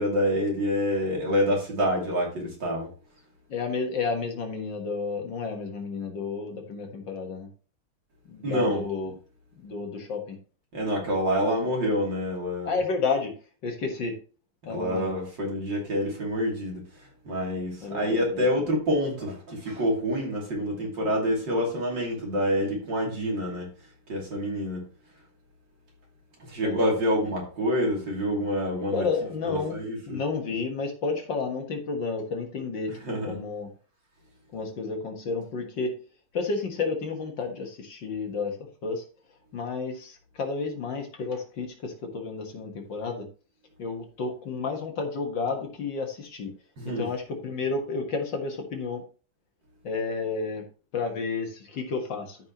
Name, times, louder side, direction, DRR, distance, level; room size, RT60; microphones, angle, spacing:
voice 1, 0.0-2.9 8.4-8.8 10.7-12.8 14.7-16.8 17.2-23.7 24.1-24.8 26.5-29.1 29.5-30.2 33.0-33.4 46.8-47.1, equal, 60° right, 3.5 m, -27 dB
voice 2, 3.5-7.5 8.3-9.1 9.6-10.4 12.7-13.3 13.6-14.2 14.7-15.1 17.8-18.5 26.6-26.9 28.9-29.8 30.1-33.7 34.5-35.9 36.3-38.6 38.8-39.0 39.5-43.3 43.8-46.5 46.9-49.0 49.8-50.6 50.9-52.4, left 4 dB, 60° left, 2.2 m, -31 dB
13.0 x 5.7 x 3.0 m
omnidirectional pair, 2.3 m